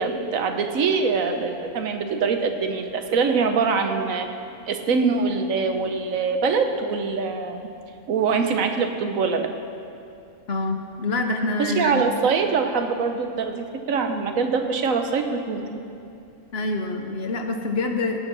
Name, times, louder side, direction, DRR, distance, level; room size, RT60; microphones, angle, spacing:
voice 1, 0.0-4.3 4.7-7.7 8.1-9.5 11.6-15.8, right 5 dB, 85° right, 6 dB, 1.3 m, -23 dB
voice 2, 10.5-12.0 16.5-18.2, left 3 dB, 55° left, 4 dB, 1.1 m, -26 dB
17.0 x 6.7 x 6.1 m, 2.5 s
omnidirectional pair, 1.4 m